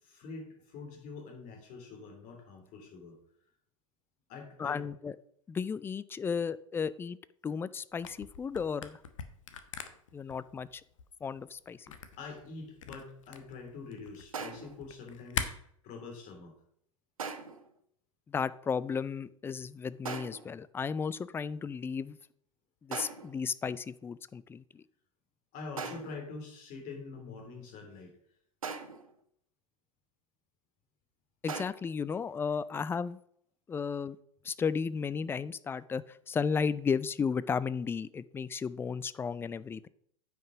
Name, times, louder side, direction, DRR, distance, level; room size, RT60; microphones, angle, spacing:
voice 1, 0.0-3.2 4.3-4.8 6.2-6.3 12.2-16.6 25.5-28.1, left 4 dB, 45° left, 2 dB, 3.3 m, -45 dB
voice 2, 4.6-5.2 5.5-7.2 7.4-9.0 10.1-10.8 11.2-11.9 18.3-22.2 22.8-24.8 31.4-33.2 33.7-34.2 34.4-39.9, left 6 dB, 15° left, 18 dB, 0.4 m, -34 dB
Camera, 7.9-15.5, left 8 dB, 65° left, 1.0 m, -42 dB
sound 1, 14.3-14.8 17.2-17.7 20.0-20.6 22.9-23.4 25.8-26.3 28.6-29.1 31.5-31.7, right 5 dB, 75° right, 1.1 m, -40 dB
9.2 x 5.9 x 5.1 m, 0.67 s
figure-of-eight pair, 85°, 18 cm